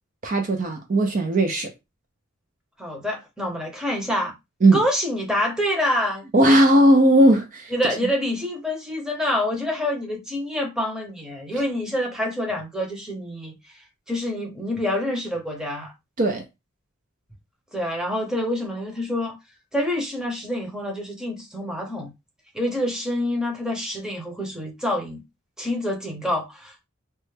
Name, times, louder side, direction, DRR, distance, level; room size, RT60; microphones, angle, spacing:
voice 1, 0.2-1.7 4.6-4.8 6.3-7.7 16.2-16.4, right 1 dB, 40° right, 0.4 m, -17 dB
voice 2, 2.8-4.3 4.7-6.3 7.7-13.5 14.1-15.9 17.7-19.4 19.7-22.1 22.5-25.2 25.6-26.9, left 1 dB, 5° right, 0.8 m, -27 dB
3.2 x 2.1 x 3.2 m
head